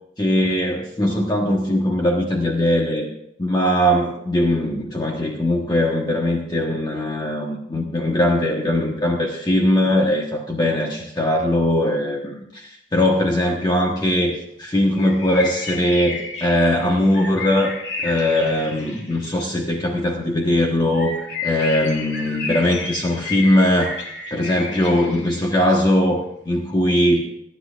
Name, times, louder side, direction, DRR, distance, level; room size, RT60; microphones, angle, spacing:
voice 1, 0.2-3.1 3.4-17.7 18.0-21.1 21.4-24.0 24.3-27.3, left 1 dB, 20° left, -1 dB, 1.3 m, -20 dB
sound 1, 14.9-19.6 20.9-25.7, left 4 dB, 60° left, 2.6 m, -32 dB
27.0 x 10.5 x 2.5 m, 0.74 s
head